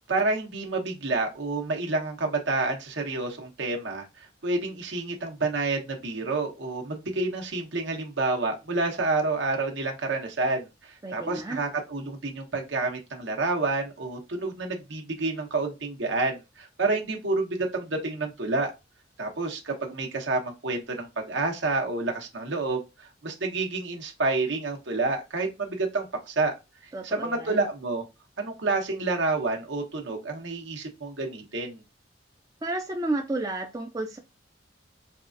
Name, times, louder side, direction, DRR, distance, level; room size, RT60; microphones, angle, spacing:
voice 1, 0.1-18.7 19.2-26.5 27.0-28.0 28.4-31.8, right 3 dB, 75° right, 1 dB, 1.0 m, -29 dB
voice 2, 11.0-11.6 26.9-27.6 32.6-34.2, right 2 dB, 20° right, 3 dB, 0.4 m, -31 dB
4.7 x 2.4 x 2.5 m, 0.24 s
head